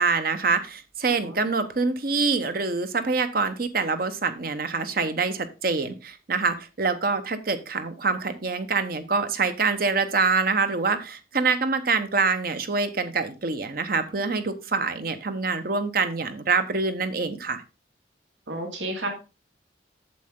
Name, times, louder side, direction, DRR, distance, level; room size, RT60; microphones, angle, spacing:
voice 1, 0.0-17.6, right 4 dB, 50° right, 10 dB, 1.0 m, -25 dB
voice 2, 18.5-19.1, right 1 dB, 80° right, 2 dB, 2.4 m, -31 dB
8.4 x 7.5 x 3.7 m, 0.31 s
head